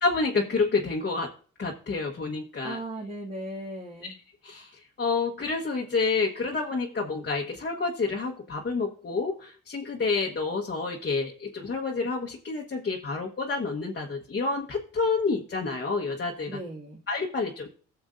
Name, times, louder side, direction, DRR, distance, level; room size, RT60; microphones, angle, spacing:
voice 1, 0.0-1.3 1.6-2.8 4.4-16.6 17.1-17.7, left 4 dB, 35° left, 0 dB, 1.3 m, -29 dB
voice 2, 2.6-4.1 16.5-17.0, right 1 dB, 20° right, -3 dB, 2.0 m, -37 dB
16.5 x 7.0 x 2.5 m, 0.42 s
cardioid pair, 90°, 30 cm